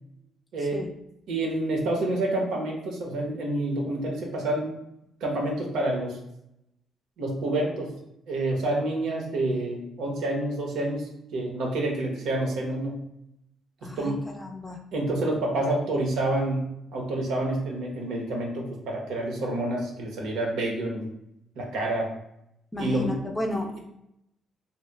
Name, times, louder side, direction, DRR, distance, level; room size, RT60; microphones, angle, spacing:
voice 1, 1.3-4.7 5.2-6.2 7.2-7.9 8.3-13.0 13.8-14.2 14.9-21.1 21.6-22.1 22.8-23.2, right 1 dB, 85° right, 0 dB, 0.8 m, -28 dB
voice 2, 13.8-14.8 22.7-23.8, left 1 dB, 15° left, 2 dB, 0.5 m, -32 dB
2.9 x 2.1 x 3.3 m, 0.82 s
cardioid pair, 90°, 0 cm